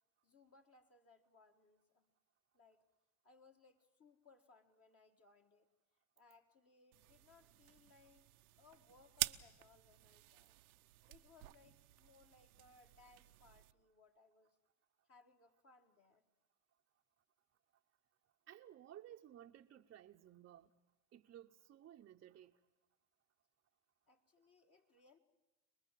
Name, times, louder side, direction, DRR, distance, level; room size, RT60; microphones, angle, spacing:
voice 1, 0.2-2.1 2.5-2.9 3.2-5.7 6.2-8.3 8.6-10.6 11.1-14.6 15.0-16.2 24.1-25.2, left 4 dB, 35° left, 1.8 m, -67 dB
sound 1, 6.9-13.7, right 18 dB, 90° right, 0.9 m, -48 dB
voice 2, 18.5-20.7 21.1-22.5, right 11 dB, 30° right, 0.8 m, -57 dB
27.5 x 20.5 x 7.5 m
supercardioid pair, 105°, 42 cm